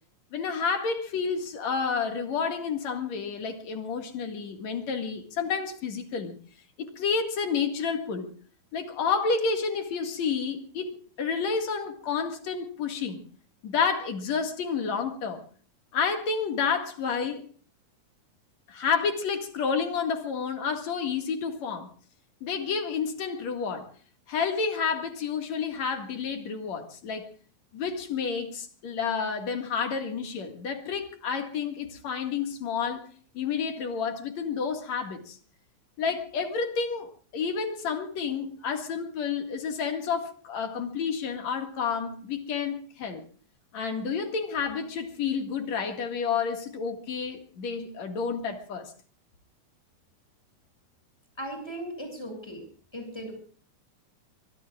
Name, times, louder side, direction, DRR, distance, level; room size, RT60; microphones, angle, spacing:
voice 1, 0.3-6.3 6.8-8.3 8.7-10.9 11.2-13.2 13.6-15.4 15.9-17.4 18.7-21.9 22.4-23.9 24.3-27.3 27.7-33.0 33.3-35.4 36.0-43.2 43.7-48.9, left 5 dB, 65° left, 3.2 m, -30 dB
voice 2, 51.4-52.7 52.9-53.3, right 1 dB, 10° left, 7.2 m, -37 dB
24.0 x 23.5 x 2.5 m
omnidirectional pair, 3.5 m